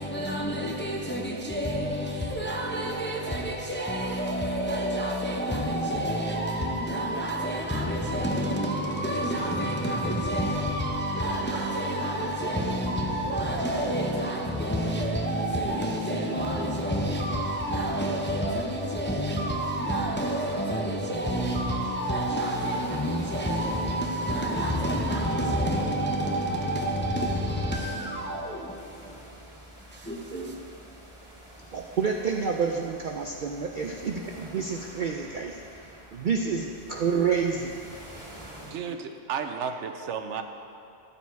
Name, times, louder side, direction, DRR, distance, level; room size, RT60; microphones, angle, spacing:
voice 1, 0.0-29.2 29.9-30.6, equal, 15° left, 0.5 m, -28 dB
sound 1, 22.5-38.7, right 1 dB, 10° right, 2.7 m, -48 dB
voice 2, 31.7-37.6, right 6 dB, 55° right, 0.6 m, -29 dB
voice 3, 38.6-40.4, right 6 dB, 80° right, 0.9 m, -33 dB
11.5 x 7.0 x 4.6 m
omnidirectional pair, 1.2 m